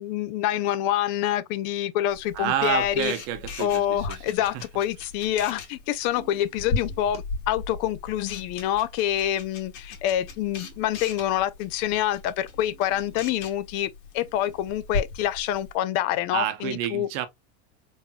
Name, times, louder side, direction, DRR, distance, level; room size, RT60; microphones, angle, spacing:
voice 1, 0.0-3.1 3.6-17.1, left 12 dB, 45° left, 0.5 m, -26 dB
Camera, 2.1-15.7, left 3 dB, 70° left, 2.3 m, -37 dB
voice 2, 2.3-4.2 4.5-4.6 16.3-17.3, right 11 dB, 55° right, 0.9 m, -29 dB
sound 1, 5.3-7.6 9.9-11.7 12.2-13.5 14.0-14.6, right 7 dB, 15° right, 1.1 m, -54 dB
4.2 x 3.4 x 2.2 m
supercardioid pair, 150°, 35 cm